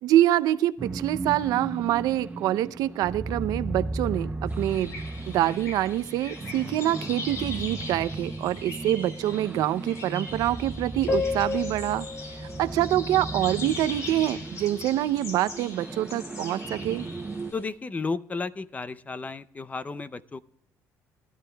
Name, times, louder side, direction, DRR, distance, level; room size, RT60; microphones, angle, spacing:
voice 1, 0.0-12.1 12.6-17.1, right 13 dB, 80° right, 15 dB, 0.5 m, -26 dB
sound 1, 0.8-17.5, right 2 dB, 20° right, 0.6 m, -36 dB
sound 2, 4.5-17.7, left 3 dB, 55° left, 3.6 m, -37 dB
voice 2, 17.5-20.4, left 4 dB, 25° left, 15 dB, 0.5 m, -33 dB
20.0 x 12.0 x 2.2 m, 0.71 s
cardioid pair, 105°, 6 cm